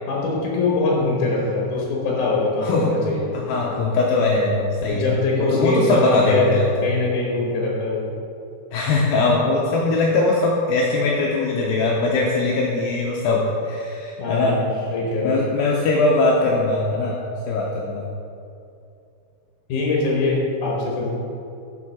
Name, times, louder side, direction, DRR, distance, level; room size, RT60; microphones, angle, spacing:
voice 1, 0.1-3.3 4.9-6.5 6.8-8.1 14.2-14.7 14.9-15.4 19.7-21.1, left 3 dB, 65° left, -3 dB, 2.1 m, -22 dB
voice 2, 2.6-2.9 3.3-6.9 8.7-14.8 15.2-17.2 17.5-18.0, left 3 dB, 85° left, -2 dB, 2.1 m, -21 dB
7.3 x 6.3 x 6.0 m, 2.6 s
omnidirectional pair, 5.0 m